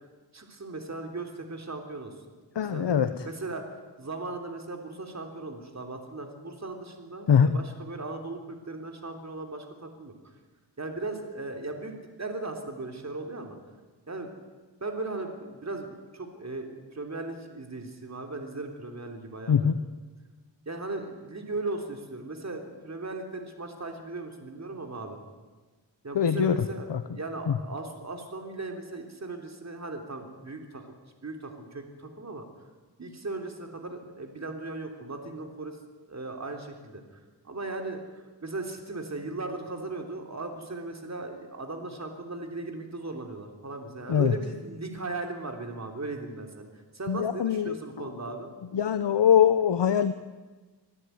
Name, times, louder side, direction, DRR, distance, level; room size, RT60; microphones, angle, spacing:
voice 1, 0.3-2.1 2.5-3.0 3.3-3.6 4.0-10.1 10.8-13.6 14.1-14.3 14.8-19.7 20.7-25.2 26.0-26.9 27.1-30.9 31.2-32.4 33.0-35.8 36.1-38.0 38.4-46.7 46.9-48.5, right 2 dB, 35° right, 4 dB, 3.5 m, -37 dB
voice 2, 2.5-3.1 7.3-7.5 19.5-19.8 26.1-26.6 26.9-27.0 44.1-44.3 47.1-47.8 48.7-50.1, left 8 dB, 70° left, 11 dB, 1.0 m, -22 dB
26.0 x 16.5 x 9.5 m, 1.3 s
wide cardioid pair, 100°, 44 cm